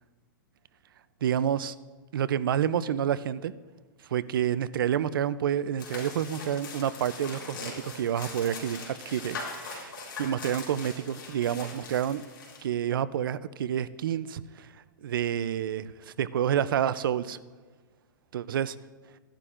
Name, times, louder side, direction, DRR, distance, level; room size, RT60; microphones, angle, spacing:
voice 1, 1.2-1.7 2.1-3.5 4.1-9.9 10.2-12.2 12.6-14.7 15.0-17.4 18.3-18.8, right 9 dB, 80° right, 16 dB, 0.5 m, -29 dB
sound 1, 5.8-12.6, left 4 dB, 75° left, 3.7 m, -41 dB
15.5 x 11.0 x 2.5 m, 1.4 s
hypercardioid pair, 165°, 11 cm